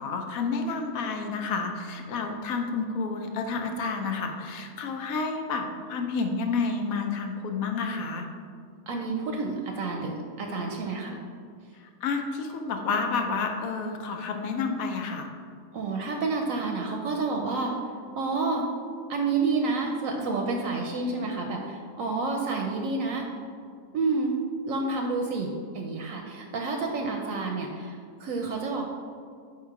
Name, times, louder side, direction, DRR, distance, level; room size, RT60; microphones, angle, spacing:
voice 1, 0.0-8.3 11.8-15.3, left 4 dB, 75° left, 4 dB, 1.0 m, -30 dB
voice 2, 8.9-11.2 15.7-17.7 18.2-18.7 19.1-23.3 23.9-24.3 24.7-25.5 25.7-28.8, right 3 dB, 70° right, 2 dB, 0.9 m, -29 dB
4.9 x 4.6 x 4.6 m, 2.1 s
omnidirectional pair, 1.6 m